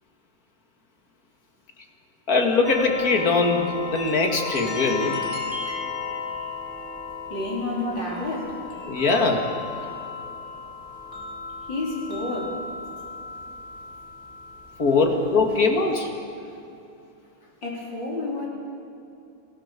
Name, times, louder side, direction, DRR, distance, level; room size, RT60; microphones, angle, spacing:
voice 1, 2.3-5.1 7.8-8.0 8.9-9.5 14.8-16.1, left 3 dB, 50° left, 3 dB, 2.7 m, -21 dB
sound 1, 2.6-16.0, left 4 dB, 10° right, 6.2 m, -35 dB
voice 2, 7.3-8.7 11.7-12.7 14.9-15.0 17.6-18.5, left 2 dB, 70° left, -3 dB, 5.0 m, -30 dB
28.0 x 17.0 x 6.9 m, 2.7 s
omnidirectional pair, 2.1 m